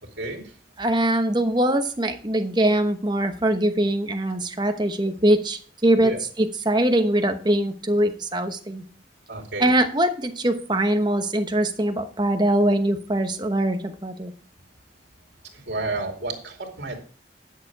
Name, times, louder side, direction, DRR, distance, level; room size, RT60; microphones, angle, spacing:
voice 1, 0.0-0.6 6.0-6.2 9.3-9.7 15.5-17.0, right 2 dB, 70° right, 1 dB, 2.6 m, -31 dB
voice 2, 0.8-6.1 6.4-8.8 9.6-14.3, right 1 dB, 25° right, 6 dB, 1.0 m, -22 dB
10.5 x 6.7 x 4.7 m, 0.42 s
head